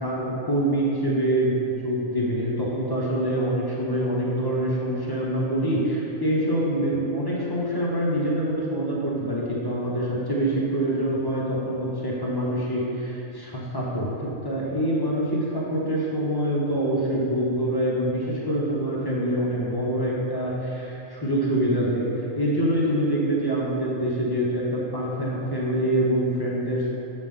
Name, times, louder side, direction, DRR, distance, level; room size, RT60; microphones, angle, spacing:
voice 1, 0.0-26.9, right 1 dB, 20° left, -5 dB, 0.9 m, -25 dB
6.7 x 6.1 x 3.8 m, 2.9 s
omnidirectional pair, 1.5 m